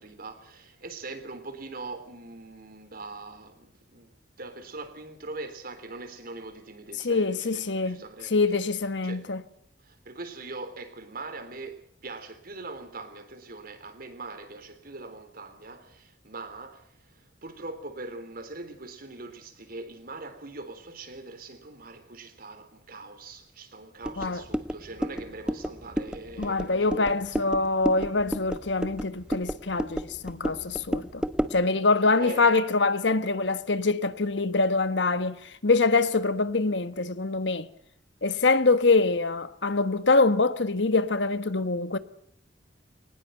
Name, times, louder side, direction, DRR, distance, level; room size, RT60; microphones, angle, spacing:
voice 1, 0.0-8.3 9.0-9.3 9.8-27.3 32.0-32.5, right 3 dB, 55° right, 3.5 m, -42 dB
voice 2, 7.0-8.0 8.3-9.4 24.2-24.4 26.4-31.2 31.5-37.7 38.2-42.0, left 3 dB, 75° left, 1.4 m, -24 dB
sound 1, 24.0-31.6, equal, 5° right, 1.1 m, -32 dB
22.5 x 19.5 x 8.0 m
head